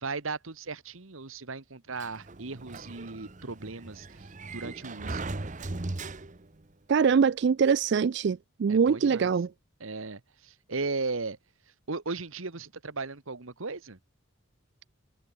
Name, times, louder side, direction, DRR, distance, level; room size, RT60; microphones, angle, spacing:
voice 1, 0.0-5.2 8.7-9.3 9.8-11.4 11.9-14.0, right 3 dB, 75° right, 1.4 m, -36 dB
Sliding door, 2.0-6.6, right 2 dB, 35° right, 0.9 m, -38 dB
voice 2, 6.9-9.5, right 6 dB, 55° right, 0.3 m, -23 dB
head